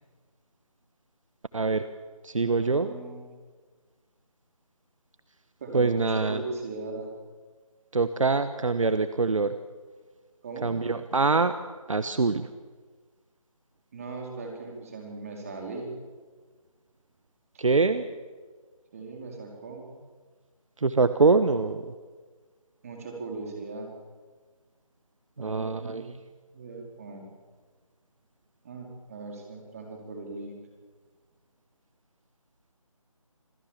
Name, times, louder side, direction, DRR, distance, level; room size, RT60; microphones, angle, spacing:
voice 1, 1.5-1.9 2.2-2.9 5.7-6.4 7.9-9.5 10.6-11.5 11.9-12.5 17.6-18.0 20.8-21.9 25.4-26.2, right 4 dB, 65° right, 11 dB, 1.2 m, -24 dB
voice 2, 2.3-3.2 5.6-7.1 10.4-10.7 13.9-15.9 18.9-19.9 22.8-23.9 25.4-26.1 26.5-27.3 28.6-30.6, right 3 dB, 25° right, 1 dB, 4.3 m, -39 dB
26.5 x 16.5 x 7.4 m, 1.4 s
figure-of-eight pair, 170°, 18 cm